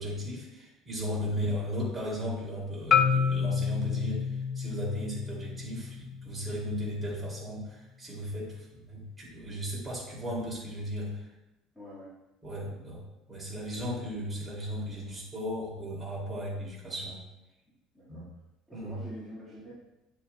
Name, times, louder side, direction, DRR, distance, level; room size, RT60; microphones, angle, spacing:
voice 1, 0.0-11.3 12.4-13.0 13.3-17.2 18.1-18.2 18.7-19.0, equal, 10° right, -6 dB, 2.6 m, -36 dB
voice 2, 1.2-1.5 11.7-12.1 12.6-12.9 17.9-18.3 18.7-19.7, equal, 5° left, -11 dB, 1.8 m, -47 dB
Marimba xylophone, 2.9-7.1, left 6 dB, 25° left, 0.3 m, -29 dB
9.2 x 7.2 x 2.3 m, 0.97 s
cardioid pair, 155°, 0 cm